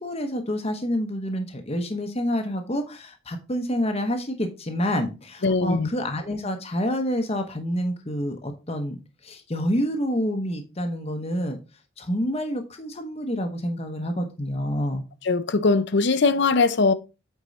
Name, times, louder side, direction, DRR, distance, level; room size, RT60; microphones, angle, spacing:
voice 1, 0.0-11.6 12.0-15.0, equal, 30° left, 0.9 m, -28 dB
voice 2, 5.4-5.9 15.3-16.9, left 4 dB, 55° left, 0.6 m, -20 dB
8.3 x 4.5 x 4.0 m
head